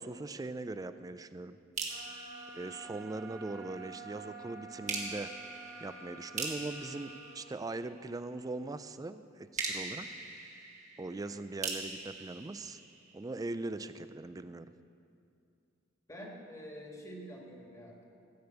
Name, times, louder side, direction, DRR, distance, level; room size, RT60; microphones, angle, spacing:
voice 1, 0.0-1.6 2.5-5.3 5.8-10.1 11.0-12.8 13.1-14.7, right 2 dB, 20° right, 12 dB, 0.3 m, -40 dB
sound 1, 1.8-3.5 4.9-8.2 9.6-13.5, right 4 dB, 40° right, 1.6 m, -42 dB
sound 2, 1.9-7.4, right 3 dB, 70° right, 3.5 m, -49 dB
voice 2, 16.1-18.0, equal, 15° left, -1 dB, 1.7 m, -47 dB
14.5 x 5.2 x 7.9 m, 2.4 s
head